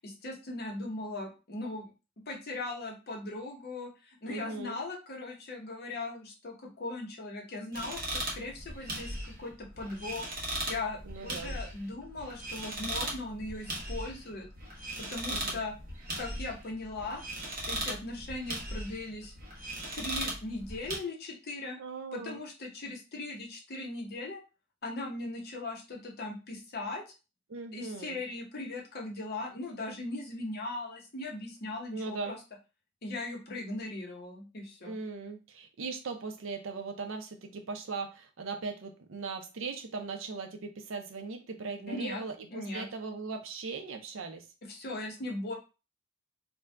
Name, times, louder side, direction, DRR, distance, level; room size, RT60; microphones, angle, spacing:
voice 1, 0.0-1.9 2.3-14.5 15.0-15.7 16.2-17.2 17.7-19.3 19.9-21.8 22.1-24.4 24.8-27.0 27.7-32.4 33.0-34.9 41.9-42.2 42.5-42.9 44.7-45.5, left 2 dB, 50° left, 0 dB, 0.8 m, -39 dB
voice 2, 4.2-4.8 11.0-11.6 15.3-15.6 21.8-22.4 27.5-28.2 31.9-32.3 34.8-44.5, right 4 dB, 65° right, 5 dB, 0.5 m, -39 dB
sound 1, 7.7-21.0, right 1 dB, 45° right, 0.9 m, -38 dB
2.6 x 2.2 x 3.3 m, 0.31 s
head